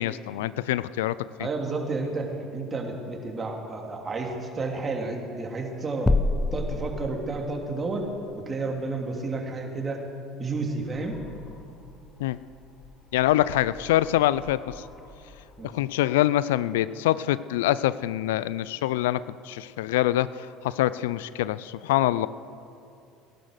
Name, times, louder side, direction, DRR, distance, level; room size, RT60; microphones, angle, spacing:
voice 1, 0.0-1.5 12.2-12.4 13.1-14.8 15.7-20.3 20.6-22.3, left 14 dB, 80° left, 18 dB, 0.4 m, -25 dB
voice 2, 1.4-6.1 6.5-8.1 8.4-10.0 10.4-11.2 15.6-15.7, right 3 dB, 30° right, 2 dB, 2.8 m, -31 dB
sound 1, 6.1-7.7, left 2 dB, 15° left, 0.7 m, -26 dB
sound 2, 10.7-16.0, left 4 dB, 50° left, 2.0 m, -49 dB
18.5 x 11.0 x 6.5 m, 2.6 s
hypercardioid pair, 75°, 0 cm